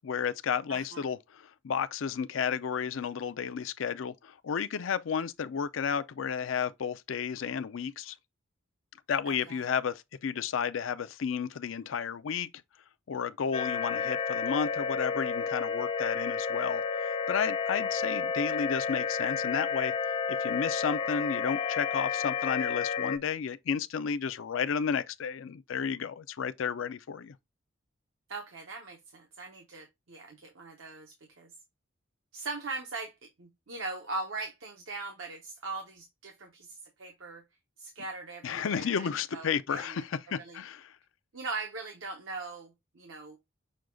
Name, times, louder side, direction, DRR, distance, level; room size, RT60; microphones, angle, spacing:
voice 1, 0.0-8.2 9.1-12.5 13.1-19.9 20.4-27.3 38.4-40.9, left 7 dB, 85° left, 0.4 m, -32 dB
voice 2, 0.7-1.0 9.3-9.6 28.3-31.5 32.3-37.4 37.8-40.0 40.3-40.6 41.3-43.4, right 3 dB, 85° right, 0.9 m, -40 dB
sound 1, 13.5-23.2, left 6 dB, 25° left, 0.4 m, -31 dB
6.3 x 2.3 x 3.7 m
head